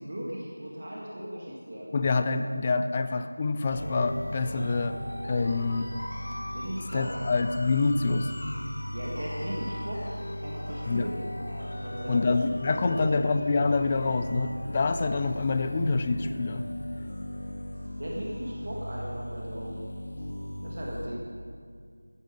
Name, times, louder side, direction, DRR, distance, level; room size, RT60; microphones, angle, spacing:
voice 1, 0.0-1.9 6.5-7.2 8.9-10.1 10.4-11.2 11.7-12.2 12.7-13.2 18.0-19.8 20.6-21.3, equal, 45° right, -4 dB, 1.8 m, -37 dB
voice 2, 1.9-4.9 5.3-5.9 6.9-8.3 10.9-11.1 12.1-16.6, left 3 dB, 20° left, 9 dB, 0.3 m, -26 dB
sound 1, 3.7-21.1, left 1 dB, 60° left, 1.3 m, -37 dB
13.0 x 9.6 x 5.2 m, 2.1 s
figure-of-eight pair, 175°, 0 cm